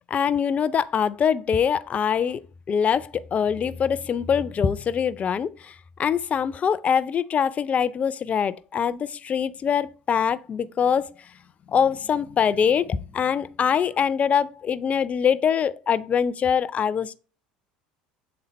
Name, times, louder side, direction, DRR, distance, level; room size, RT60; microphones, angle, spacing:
voice 1, 0.1-2.4 2.7-5.7 6.0-11.1 11.7-17.1, left 7 dB, 30° left, 0.4 m, -23 dB
7.0 x 3.8 x 4.1 m
figure-of-eight pair, 65°, 4 cm